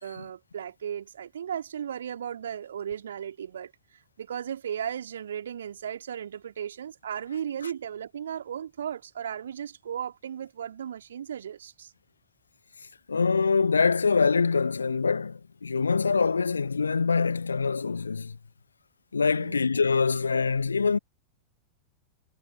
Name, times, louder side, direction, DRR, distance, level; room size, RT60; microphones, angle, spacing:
voice 1, 0.0-3.7 4.2-11.9 19.3-19.7, right 9 dB, 65° right, 2.6 m, -36 dB
voice 2, 13.1-18.4 19.1-21.0, left 5 dB, 75° left, 0.7 m, -24 dB
figure-of-eight pair, 90°, 0 cm